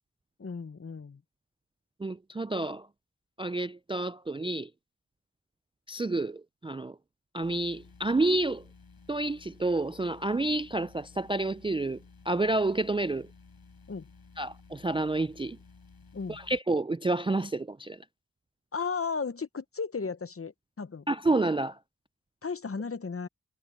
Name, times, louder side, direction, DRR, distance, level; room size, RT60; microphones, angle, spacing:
voice 1, 0.4-1.2 13.9-14.1 16.1-16.4 18.7-21.0 22.4-23.3, left 5 dB, 40° left, 0.8 m, -35 dB
voice 2, 2.0-2.9 3.4-4.7 5.9-7.0 7.3-8.6 9.1-12.0 12.3-13.3 14.4-15.6 16.3-18.0 21.1-21.8, right 2 dB, 15° right, 0.3 m, -29 dB
sound 1, 7.4-16.6, left 4 dB, 90° left, 6.8 m, -55 dB
wide cardioid pair, 55°, 35 cm